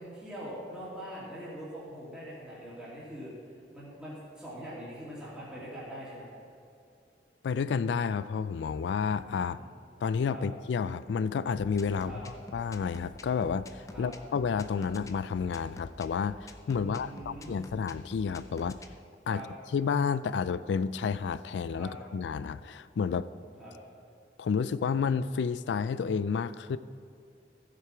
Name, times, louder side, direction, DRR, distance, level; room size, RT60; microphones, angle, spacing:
voice 1, 0.0-3.3 3.7-6.3 9.6-9.8 10.3-10.4 12.0-12.2 13.9-14.1 16.8-17.7 19.3-19.5 21.8-21.9 23.6-23.7, right 1 dB, 5° right, -11 dB, 2.5 m, -43 dB
voice 2, 7.4-9.6 10.0-12.2 12.5-18.8 19.3-19.4 19.7-23.3 24.4-26.8, left 6 dB, 80° left, 15 dB, 0.3 m, -30 dB
sound 1, 11.5-18.9, left 2 dB, 20° left, 0.5 m, -47 dB
14.0 x 7.7 x 4.9 m, 2.4 s
head